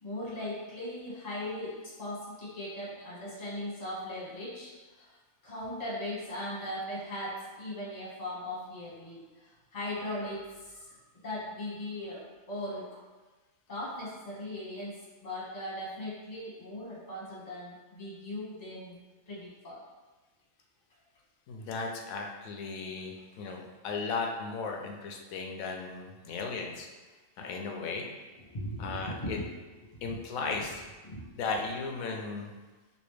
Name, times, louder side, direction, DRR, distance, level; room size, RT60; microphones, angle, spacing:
voice 1, 0.0-4.7 5.0-5.1 5.4-11.0 11.2-12.9 13.7-19.0 19.3-19.8 28.5-29.5 29.8-30.2 31.0-31.2, left 1 dB, 30° left, -7 dB, 1.2 m, -39 dB
voice 2, 21.5-26.9 27.4-28.1 28.8-29.4 30.0-30.8 31.3-32.5, left 4 dB, 80° left, 2 dB, 1.0 m, -36 dB
3.1 x 2.9 x 3.1 m, 1.2 s
omnidirectional pair, 1.4 m